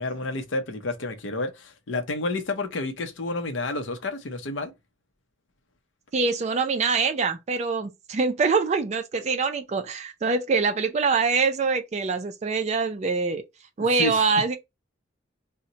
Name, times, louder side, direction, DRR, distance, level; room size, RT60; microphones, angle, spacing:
voice 1, 0.0-4.7 14.0-14.2, left 2 dB, 70° left, 0.6 m, -30 dB
voice 2, 6.1-13.4 13.8-14.6, right 4 dB, 35° right, 0.3 m, -24 dB
2.7 x 2.1 x 3.8 m
head